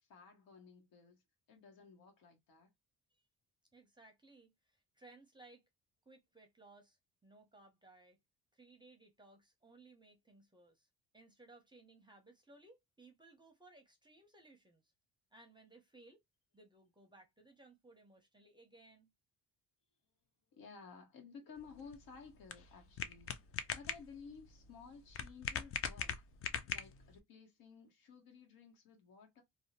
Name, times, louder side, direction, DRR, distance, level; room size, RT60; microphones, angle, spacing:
voice 1, 0.1-1.2 1.5-2.7 20.5-26.2 26.7-29.4, left 5 dB, 75° left, 1.1 m, -56 dB
voice 2, 3.7-5.6 6.1-8.2 8.5-10.9 11.1-14.8 15.3-16.2 16.5-19.1, right 2 dB, 15° right, 0.6 m, -62 dB
sound 1, 21.6-27.2, left 7 dB, 40° left, 0.4 m, -42 dB
2.6 x 2.1 x 2.8 m
cardioid pair, 120°, 34 cm